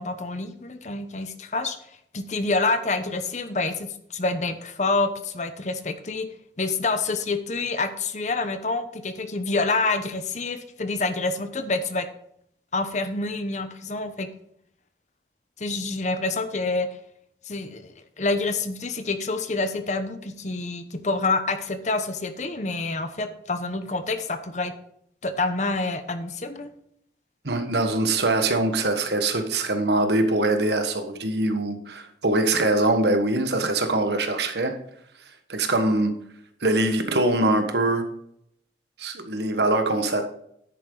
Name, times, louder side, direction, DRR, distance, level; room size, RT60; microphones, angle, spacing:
voice 1, 0.0-1.8 2.1-6.3 6.6-12.1 12.7-14.3 15.6-16.9 17.5-24.7 25.2-26.7, left 3 dB, 40° left, 0.9 m, -27 dB
voice 2, 27.4-34.8 35.5-36.1 36.6-38.1 39.0-40.3, right 2 dB, 70° right, 1.4 m, -23 dB
10.0 x 8.7 x 3.9 m
head